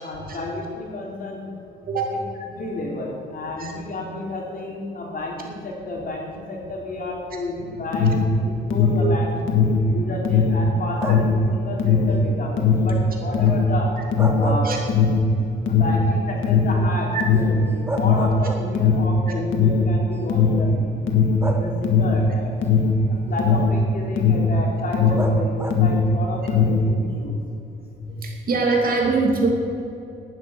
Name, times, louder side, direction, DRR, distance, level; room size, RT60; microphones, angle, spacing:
voice 1, 0.0-1.5 2.1-2.2 2.5-8.1 8.4-9.3 9.9-13.9 14.4-14.7 15.7-21.1 21.5-22.5 23.1-27.4, left 2 dB, 45° left, -2 dB, 3.4 m, -31 dB
Alarm, 7.6-25.4 25.6-26.9, left 5 dB, 80° left, 1.7 m, -19 dB
sound 1, 11.0-11.5 14.0-15.4 15.8-15.9 17.4-17.5 17.9-19.0 20.0-20.1 21.4-22.1 25.2-26.0, right 2 dB, 10° right, 1.3 m, -31 dB
voice 2, 28.0-29.5, right 4 dB, 45° right, 0 dB, 2.8 m, -23 dB
11.0 x 9.6 x 6.3 m, 2.8 s
cardioid pair, 90°, 20 cm